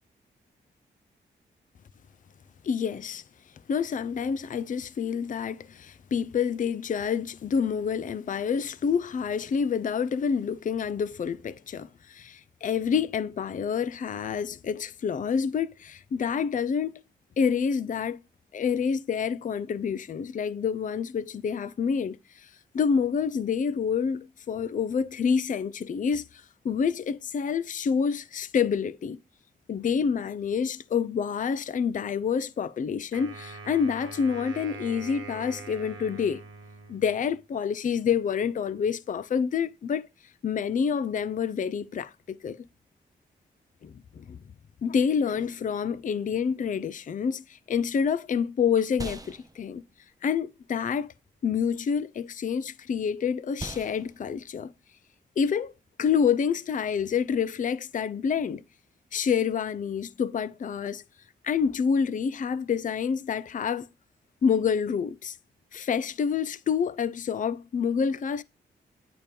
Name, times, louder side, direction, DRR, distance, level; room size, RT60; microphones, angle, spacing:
voice 1, 2.6-3.2 3.7-17.0 17.4-18.2 18.5-22.5 22.7-29.2 29.7-36.4 36.9-40.0 40.4-42.6 43.8-44.4 44.8-49.8 50.2-51.1 51.4-54.7 55.4-55.7 56.0-58.6 59.1-61.0 61.4-63.9 64.4-65.4 65.7-68.4, left 6 dB, 45° left, 0.4 m, -28 dB
Wind instrument woodwind instrument, 33.1-37.4, right 5 dB, 85° right, 1.0 m, -43 dB
sound 1, 47.6-57.2, right 2 dB, 20° right, 0.6 m, -46 dB
8.8 x 2.9 x 5.1 m
supercardioid pair, 45°, 20 cm